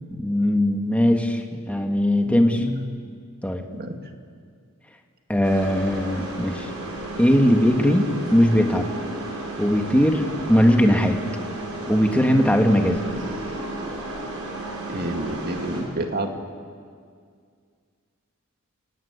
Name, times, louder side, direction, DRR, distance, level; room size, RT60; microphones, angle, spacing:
voice 1, 0.2-2.7 3.4-3.7 5.3-6.7 7.2-8.9 9.6-11.2 11.9-13.0, equal, 5° left, 3 dB, 1.7 m, -19 dB
voice 2, 2.3-2.9 3.7-4.0 14.9-16.3, right 1 dB, 45° right, 4 dB, 2.3 m, -29 dB
sound 1, 5.4-15.8, right 2 dB, 80° right, 6.1 m, -33 dB
29.5 x 17.0 x 9.7 m, 2.1 s
head